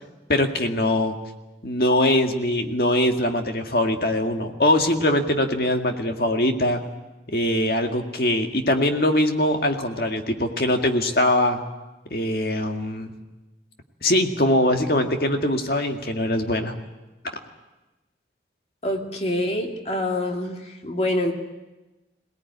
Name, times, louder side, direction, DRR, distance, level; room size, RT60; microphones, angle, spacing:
voice 1, 0.3-1.1 1.6-6.8 7.3-11.6 12.1-13.1 14.0-16.8, left 1 dB, 60° left, 4 dB, 2.1 m, -22 dB
voice 2, 18.8-21.3, left 1 dB, 35° left, 2 dB, 2.4 m, -26 dB
23.0 x 18.5 x 9.6 m, 1.1 s
head